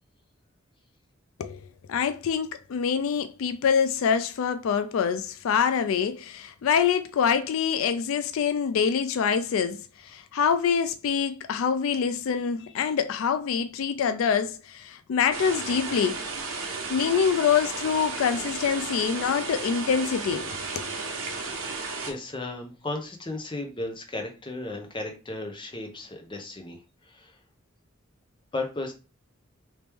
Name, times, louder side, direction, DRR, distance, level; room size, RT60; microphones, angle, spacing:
voice 1, 1.9-16.2 16.9-20.9, left 7 dB, 85° left, 0.3 m, -25 dB
sound 1, 15.3-22.1, right 4 dB, 85° right, 0.9 m, -34 dB
voice 2, 21.3-21.7 22.0-27.4 28.5-28.9, left 2 dB, 25° left, 0.8 m, -35 dB
3.0 x 3.0 x 3.4 m
head